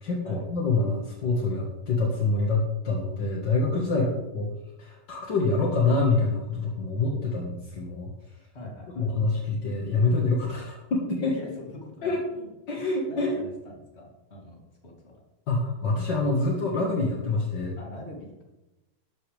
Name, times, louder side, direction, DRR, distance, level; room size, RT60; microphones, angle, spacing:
voice 1, 0.0-4.1 4.3-4.5 4.8-8.1 8.9-11.3 12.0-12.2 12.7-13.3 15.5-17.7, left 3 dB, 60° left, -1 dB, 1.1 m, -26 dB
voice 2, 8.5-9.1 11.2-12.5 12.8-15.2 17.8-18.4, left 1 dB, 20° left, -2 dB, 2.4 m, -43 dB
12.5 x 11.5 x 3.5 m, 1.0 s
omnidirectional pair, 4.7 m